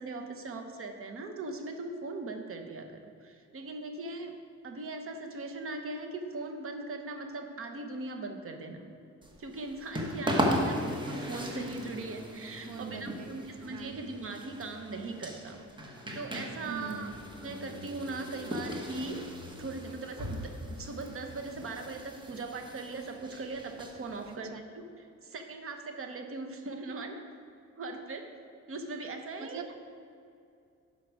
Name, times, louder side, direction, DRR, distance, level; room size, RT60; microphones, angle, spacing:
voice 1, 0.0-4.3 4.6-8.8 9.4-10.8 11.1-15.6 16.1-17.1 17.4-19.2 19.6-24.8 25.2-27.2 27.8-28.3 28.7-29.8, right 3 dB, 50° right, 5 dB, 1.0 m, -39 dB
sound 1, 9.2-24.4, equal, 15° right, 1.1 m, -37 dB
voice 2, 12.7-13.4 13.7-14.0 16.6-17.2 24.3-24.6 29.4-29.8, right 6 dB, 75° right, 8 dB, 0.8 m, -43 dB
11.5 x 5.7 x 4.8 m, 2.5 s
cardioid pair, 135°, 29 cm